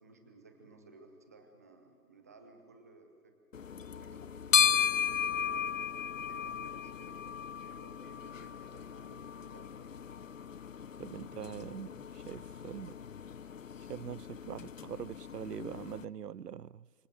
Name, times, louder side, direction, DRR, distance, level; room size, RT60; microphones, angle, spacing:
voice 1, 0.0-3.3 3.6-5.6 6.1-7.2 7.6-10.0, right 3 dB, 10° right, 0.8 m, -58 dB
sound 1, 3.5-16.0, left 7 dB, 55° left, 0.6 m, -35 dB
voice 2, 11.0-13.0 13.9-16.9, right 8 dB, 85° right, 0.5 m, -43 dB
25.5 x 17.0 x 7.8 m
figure-of-eight pair, 145°, 46 cm